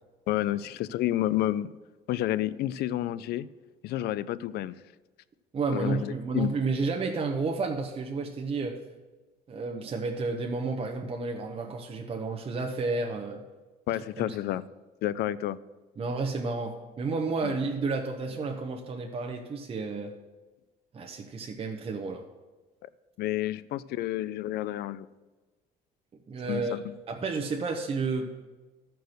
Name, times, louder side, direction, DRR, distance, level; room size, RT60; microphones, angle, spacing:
voice 1, 0.3-1.7 2.1-3.5 3.8-4.8 5.7-6.5 13.9-14.6 15.0-15.6 17.4-17.5 23.2-25.1 26.5-26.9, left 13 dB, 70° left, 17 dB, 0.4 m, -30 dB
voice 2, 5.5-8.8 9.5-13.4 14.2-14.3 16.0-20.1 20.9-22.2 26.3-26.8 27.1-28.3, right 4 dB, 35° right, 2 dB, 0.8 m, -31 dB
12.5 x 4.6 x 6.4 m, 1.2 s
cardioid pair, 110°, 17 cm